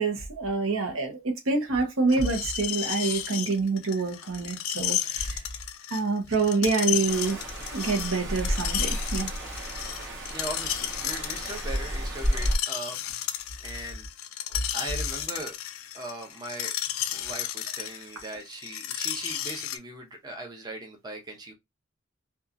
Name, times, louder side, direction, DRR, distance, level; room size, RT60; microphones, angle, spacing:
voice 1, 0.0-5.4 5.9-7.4 7.7-9.3, right 3 dB, 80° right, 0.8 m, -27 dB
Screech, 2.1-19.8, left 11 dB, 90° left, 0.4 m, -33 dB
sound 1, 7.1-12.6, equal, 65° right, 1.1 m, -31 dB
voice 2, 10.3-13.0 13.6-14.0 14.7-15.5 15.9-16.8 17.1-21.5, right 1 dB, 20° right, 0.6 m, -39 dB
2.8 x 2.3 x 2.4 m
head